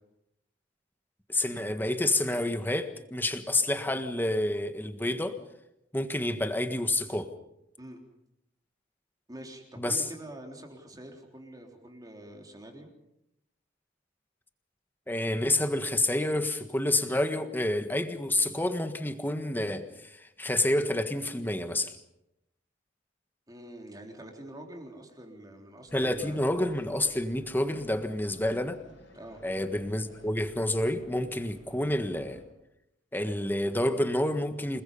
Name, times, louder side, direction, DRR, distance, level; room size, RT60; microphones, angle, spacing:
voice 1, 1.3-5.4 5.9-7.3 9.8-10.0 15.1-21.9 25.9-28.8 29.4-32.4 33.1-34.8, left 1 dB, 10° left, 8 dB, 1.5 m, -29 dB
voice 2, 9.3-12.9 23.5-26.4 29.1-29.4, right 1 dB, 20° right, 2 dB, 3.7 m, -46 dB
sound 1, 25.9-32.4, left 1 dB, 85° left, 6.6 m, -54 dB
28.0 x 21.0 x 5.6 m, 0.84 s
head